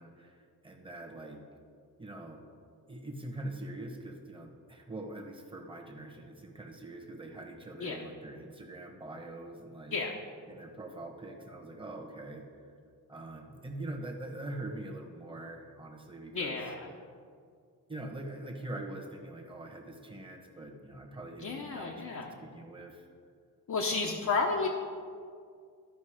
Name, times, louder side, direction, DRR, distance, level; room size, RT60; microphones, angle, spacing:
voice 1, 0.0-1.4 2.0-2.4 2.9-10.0 10.5-12.7 13.1-16.6 17.9-23.1 23.9-24.3, right 2 dB, 15° right, 1 dB, 1.3 m, -43 dB
voice 2, 16.3-16.9 21.4-22.3 23.7-24.7, left 4 dB, 50° left, -1 dB, 0.9 m, -32 dB
13.0 x 5.4 x 5.0 m, 2.2 s
cardioid pair, 110°, 37 cm